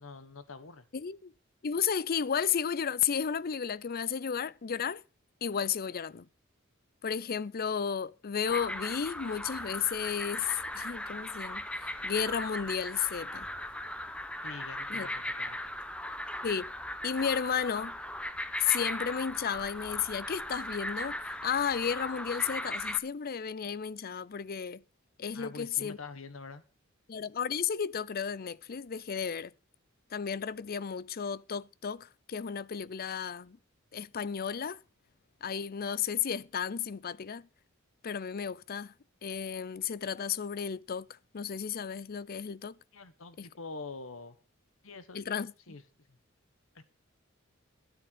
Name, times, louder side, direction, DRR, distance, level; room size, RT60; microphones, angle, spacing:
voice 1, 0.0-0.8 14.4-15.6 25.3-26.6 42.9-44.4 44.8-45.2 45.7-45.8 46.1-46.2 46.7-46.8, left 3 dB, 70° left, 1.3 m, -45 dB
voice 2, 0.9-1.3 1.6-5.0 5.4-6.3 7.0-13.5 14.9-15.1 16.4-16.7 17.0-18.0 18.6-24.8 25.2-26.0 27.1-29.5 30.1-33.6 33.9-34.8 35.4-37.5 38.0-38.9 39.2-42.7 43.4-43.5 45.1-45.5, left 7 dB, 45° left, 0.5 m, -33 dB
sound 1, 8.5-23.0, left 1 dB, 5° left, 0.8 m, -38 dB
12.5 x 9.4 x 6.2 m
head